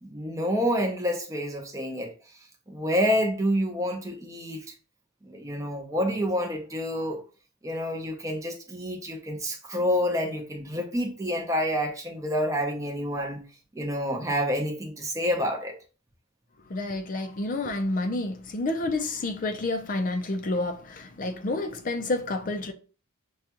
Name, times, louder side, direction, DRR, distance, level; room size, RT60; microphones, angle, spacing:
voice 1, 0.0-2.1 2.7-4.6 5.3-7.2 7.6-13.4 13.7-15.7, equal, 15° right, 0.7 m, -28 dB
voice 2, 16.7-22.7, left 2 dB, 40° left, 0.4 m, -29 dB
6.2 x 2.3 x 2.9 m
head